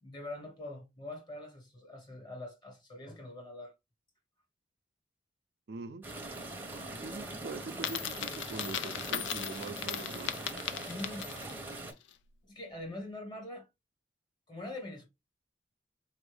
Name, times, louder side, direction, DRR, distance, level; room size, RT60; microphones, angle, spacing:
voice 1, 0.0-3.7 10.9-11.3 12.4-13.7 14.5-15.1, left 1 dB, 25° left, 1.4 m, -43 dB
voice 2, 5.7-6.0 7.0-10.4, right 3 dB, 65° right, 0.4 m, -43 dB
sound 1, 6.0-11.9, right 2 dB, 10° right, 0.7 m, -42 dB
Coin (dropping), 7.7-11.6, left 9 dB, 85° left, 0.4 m, -38 dB
4.1 x 2.6 x 3.3 m
head